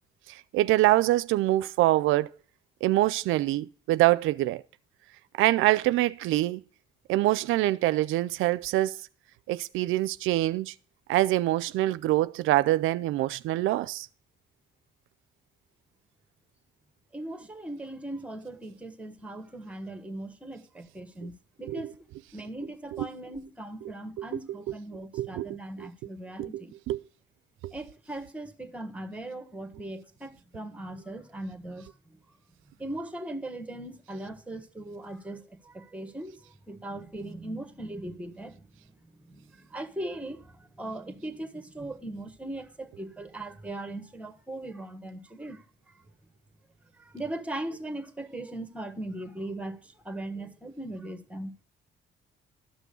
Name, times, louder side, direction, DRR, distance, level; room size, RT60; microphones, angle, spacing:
voice 1, 0.3-2.3 2.8-4.6 5.4-6.6 7.1-9.0 9.5-10.7 11.1-14.1 21.6-21.9 22.9-23.1 23.9-24.3 25.1-25.9 26.4-27.0 27.6-27.7, right 16 dB, 90° right, 0.4 m, -25 dB
voice 2, 17.1-21.3 21.6-21.9 22.3-26.7 27.7-31.9 32.8-36.4 36.7-38.6 39.3-40.5 40.8-45.6 47.0-49.8 50.0-51.5, right 1 dB, 5° right, 1.4 m, -39 dB
12.5 x 6.1 x 6.9 m
cardioid pair, 90°, 20 cm